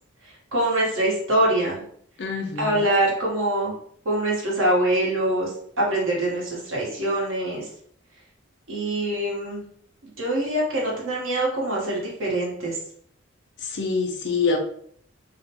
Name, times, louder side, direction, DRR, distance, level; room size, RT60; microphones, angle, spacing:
voice 1, 0.2-1.8 2.6-3.8 4.0-7.7 8.7-9.6 10.2-12.8, right 1 dB, 75° right, -4 dB, 1.0 m, -24 dB
voice 2, 2.2-2.9 13.6-14.6, left 4 dB, 55° left, 3 dB, 0.5 m, -25 dB
2.5 x 2.1 x 2.8 m, 0.62 s
head